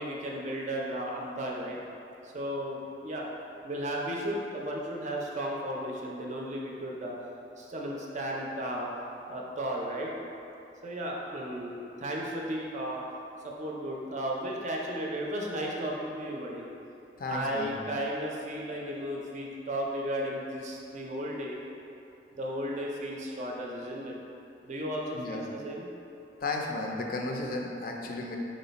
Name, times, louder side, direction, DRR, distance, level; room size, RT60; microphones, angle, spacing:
voice 1, 0.0-1.8 2.2-3.3 3.6-7.1 7.6-8.9 9.3-10.1 10.8-13.1 13.4-16.6 17.3-21.6 22.3-24.2 24.6-25.9, equal, 40° right, -2 dB, 0.5 m, -34 dB
voice 2, 17.2-17.8 25.1-25.4 26.4-28.4, left 2 dB, 50° left, 0 dB, 0.4 m, -34 dB
4.9 x 2.1 x 3.9 m, 2.8 s
head